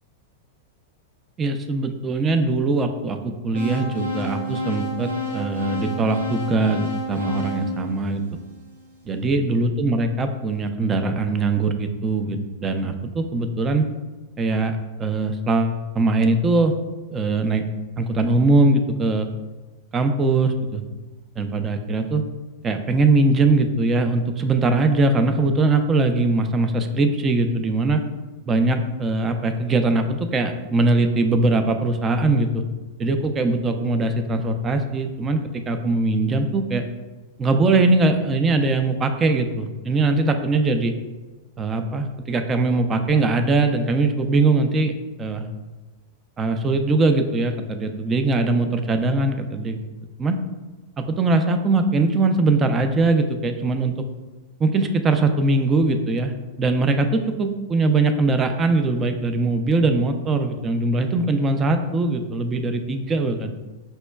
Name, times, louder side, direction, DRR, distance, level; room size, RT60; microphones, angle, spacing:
voice 1, 1.4-8.2 9.1-13.9 14.4-16.7 17.1-17.6 18.0-19.3 19.9-20.8 21.4-22.2 22.6-28.0 28.5-32.6 33.0-36.8 37.4-40.9 41.6-45.5 46.4-49.8 50.2-50.4 51.0-53.9 54.6-56.3 56.6-63.5, right 3 dB, 25° right, 7 dB, 0.3 m, -21 dB
sound 1, 3.5-8.7, equal, 85° right, 0.9 m, -30 dB
5.3 x 2.1 x 2.2 m, 1.2 s
hypercardioid pair, 110°, 0 cm